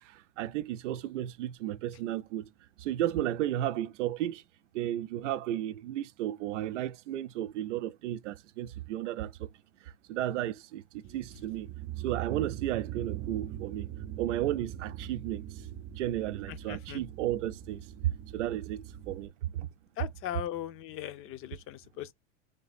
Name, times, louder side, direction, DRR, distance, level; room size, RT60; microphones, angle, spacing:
voice 1, 0.0-2.5 2.8-4.4 4.7-9.5 10.1-11.7 12.0-13.9 14.2-15.4 16.0-19.7, right 13 dB, 85° right, 0.6 m, -33 dB
sound 1, 11.0-19.3, right 12 dB, 40° right, 0.6 m, -41 dB
voice 2, 16.5-17.0 20.0-22.1, left 11 dB, 40° left, 0.6 m, -39 dB
3.5 x 2.7 x 4.1 m
supercardioid pair, 120°, 35 cm